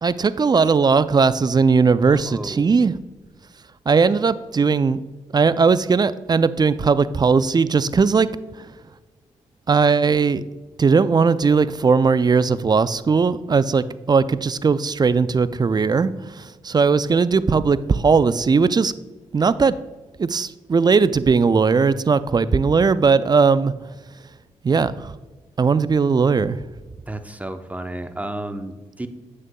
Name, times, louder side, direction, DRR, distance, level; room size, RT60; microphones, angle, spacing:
voice 1, 0.0-2.9 3.9-5.0 5.3-8.3 9.7-10.4 10.8-18.9 19.3-19.8 20.2-23.7 24.6-25.1 25.6-26.6, right 5 dB, 30° right, 16 dB, 0.4 m, -18 dB
voice 2, 2.1-2.7 27.1-29.1, right 1 dB, 10° right, 8 dB, 0.7 m, -32 dB
8.9 x 6.4 x 2.2 m, 1.2 s
supercardioid pair, 50°, 13 cm